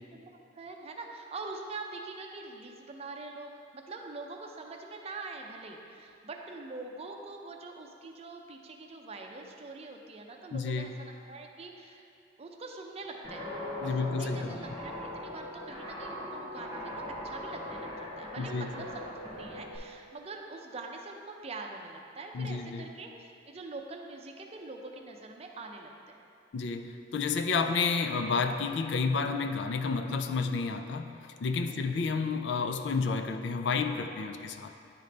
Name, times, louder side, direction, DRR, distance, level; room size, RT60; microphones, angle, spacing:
voice 1, 0.0-12.0 12.4-13.5 13.8-26.2 31.7-31.8, right 3 dB, 35° right, 2 dB, 0.5 m, -44 dB
voice 2, 10.5-11.0 13.8-14.6 18.4-18.7 22.3-22.9 26.5-34.7, left 4 dB, 65° left, 7 dB, 0.4 m, -31 dB
Guitar, 13.2-19.8, left 1 dB, 25° left, 1.6 m, -40 dB
10.5 x 3.9 x 3.3 m, 2.5 s
head